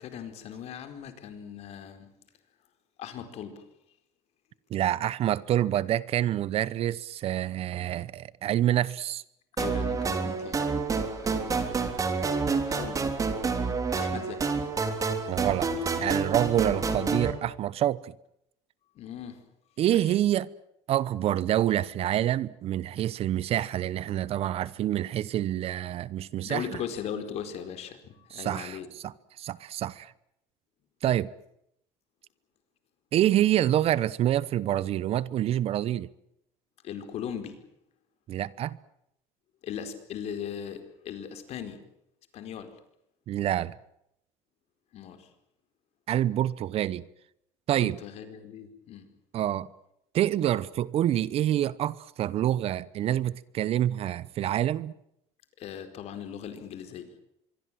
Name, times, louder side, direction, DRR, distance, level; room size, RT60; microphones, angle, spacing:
voice 1, 0.0-2.1 3.0-3.6 9.6-10.7 10.9-11.8 12.6-13.0 13.9-14.5 18.9-19.4 19.9-20.2 26.4-28.9 36.8-37.6 39.6-41.8 42.3-42.7 44.9-45.3 47.7-49.1 55.6-57.1, left 8 dB, 55° left, 4.6 m, -39 dB
voice 2, 4.7-9.2 15.3-15.7 16.0-18.1 19.8-20.5 20.9-26.6 28.3-28.8 29.0-29.1 29.4-30.1 31.0-31.3 33.1-36.1 38.3-38.8 43.3-43.7 46.1-47.0 47.7-48.0 49.3-49.7 50.1-54.9, right 12 dB, 50° right, 0.9 m, -27 dB
sound 1, 9.6-17.3, right 4 dB, 25° right, 3.6 m, -28 dB
25.0 x 23.5 x 7.7 m
cardioid pair, 130°, 13 cm